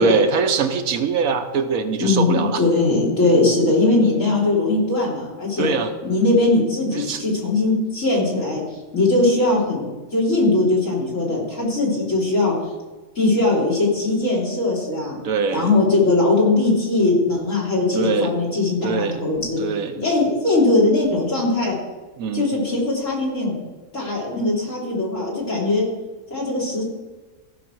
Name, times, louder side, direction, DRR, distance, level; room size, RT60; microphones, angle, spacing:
voice 1, 0.0-2.6 5.6-5.9 6.9-7.2 15.2-15.7 18.0-18.3 18.8-19.2 19.6-20.0 22.2-22.5, right 5 dB, 85° right, 7 dB, 1.3 m, -22 dB
voice 2, 2.0-5.7 6.0-9.9 10.1-12.7 13.1-15.2 15.5-19.6 20.0-21.7 22.3-23.6 23.9-25.9 26.3-26.8, left 2 dB, 65° left, -5 dB, 3.4 m, -20 dB
15.0 x 5.0 x 6.1 m, 1.2 s
omnidirectional pair, 1.4 m